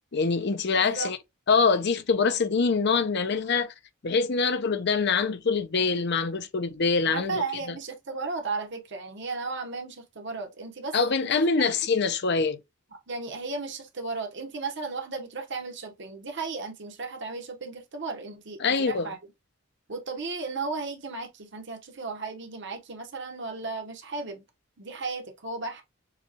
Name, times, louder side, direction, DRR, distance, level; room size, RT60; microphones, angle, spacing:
voice 1, 0.1-1.2 1.5-3.7 4.0-7.4 10.9-12.6 18.6-19.1, left 4 dB, 55° left, 0.6 m, -24 dB
voice 2, 0.8-1.1 7.1-10.9 11.2-11.3 11.6-11.7 12.9-19.2 19.9-24.4 24.8-25.8, right 4 dB, 60° right, 1.0 m, -35 dB
7.0 x 2.3 x 2.8 m
head